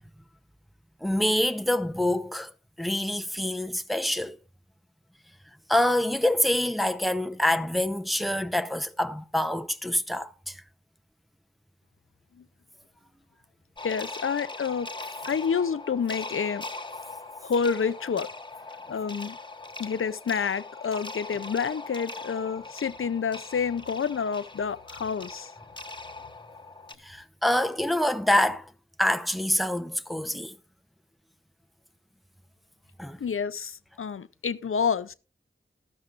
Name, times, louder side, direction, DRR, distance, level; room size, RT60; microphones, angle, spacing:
voice 1, 1.0-2.5 2.8-4.4 5.7-10.6 27.0-28.7 29.0-30.5 33.0-33.2, left 1 dB, ahead, 0.7 m, -26 dB
voice 2, 13.8-14.9 15.3-16.6 17.4-18.3 18.9-19.4 19.8-25.5 33.2-35.1, left 6 dB, 80° left, 0.5 m, -28 dB
sound 1, 13.8-27.0, left 3 dB, 20° left, 1.2 m, -41 dB
13.5 x 13.0 x 2.5 m
wide cardioid pair, 45°, 21 cm